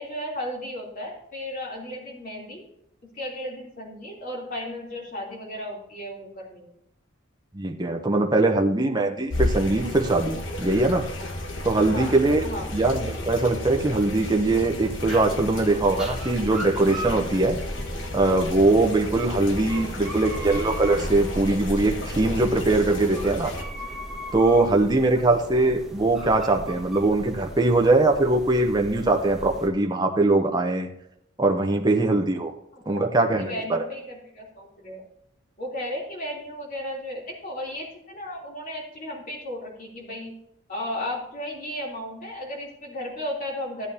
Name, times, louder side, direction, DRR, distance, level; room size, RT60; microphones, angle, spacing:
voice 1, 0.0-2.6 3.0-6.7 11.8-12.1 12.4-12.7 25.1-25.3 32.7-33.1 33.3-35.1 35.6-40.3 40.7-43.9, left 1 dB, 45° left, -3 dB, 3.2 m, -34 dB
voice 2, 7.5-11.0 11.6-12.4 12.7-17.6 18.1-23.5 24.3-30.9 31.4-32.5 32.9-33.8, right 2 dB, 20° right, 3 dB, 0.7 m, -21 dB
sound 1, 9.3-23.6, left 1 dB, 65° left, 1.5 m, -33 dB
sound 2, 14.8-29.7, right 1 dB, 5° right, 1.5 m, -37 dB
14.0 x 8.7 x 2.8 m, 0.78 s
head